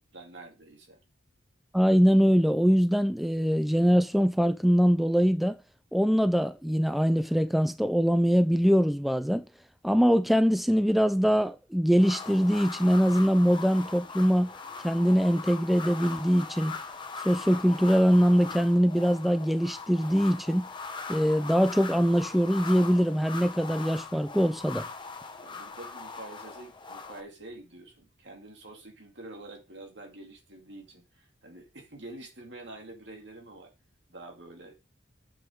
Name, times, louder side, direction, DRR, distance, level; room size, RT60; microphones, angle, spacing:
voice 1, 0.1-1.0 25.4-33.7 34.1-34.8, right 2 dB, 65° right, 2.5 m, -47 dB
voice 2, 1.7-5.6 5.9-9.4 9.8-14.5 14.8-16.8 17.2-20.7 21.1-24.9, equal, ahead, 0.3 m, -23 dB
sound 1, 12.0-27.2, left 4 dB, 25° left, 1.0 m, -40 dB
8.1 x 5.7 x 5.0 m
head